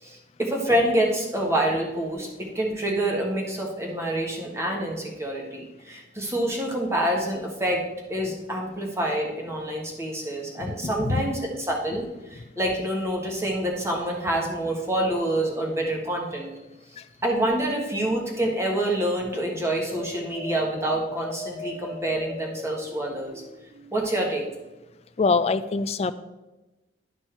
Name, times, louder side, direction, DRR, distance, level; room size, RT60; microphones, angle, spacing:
voice 1, 0.0-2.3 2.5-11.4 11.7-16.5 17.2-23.4 23.9-24.4, right 1 dB, 15° right, -1 dB, 1.4 m, -27 dB
voice 2, 10.6-11.3 17.0-17.1 25.2-26.1, left 4 dB, 35° left, 12 dB, 0.3 m, -25 dB
sound 1, 19.8-24.1, left 1 dB, 60° right, 2.2 m, -39 dB
11.0 x 4.5 x 4.5 m, 1.1 s
head